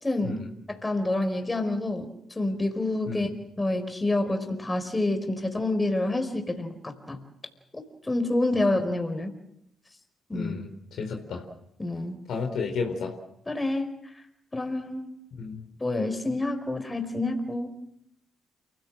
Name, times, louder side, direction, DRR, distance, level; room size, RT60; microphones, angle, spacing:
voice 1, 0.0-0.4 0.7-3.3 3.6-7.2 7.7-9.3 10.3-10.5 11.8-12.2 13.5-13.9 14.5-15.1 15.8-17.8, left 2 dB, 20° left, 6 dB, 4.8 m, -28 dB
voice 2, 10.3-11.4 12.3-13.2 15.4-15.6, left 4 dB, 65° left, 3 dB, 4.0 m, -32 dB
29.0 x 16.5 x 7.7 m, 0.76 s
hypercardioid pair, 45°, 0 cm